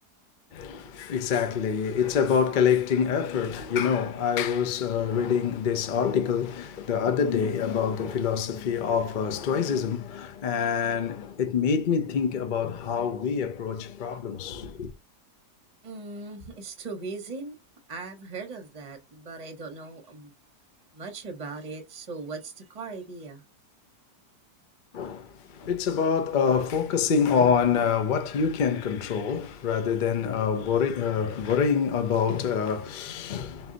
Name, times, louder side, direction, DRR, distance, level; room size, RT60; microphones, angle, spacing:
voice 1, 0.5-14.9 24.9-33.7, left 7 dB, 70° left, 0.4 m, -26 dB
voice 2, 15.8-17.6 17.9-20.3 20.9-23.4, right 3 dB, 30° right, 0.9 m, -39 dB
3.9 x 2.8 x 3.8 m
omnidirectional pair, 1.8 m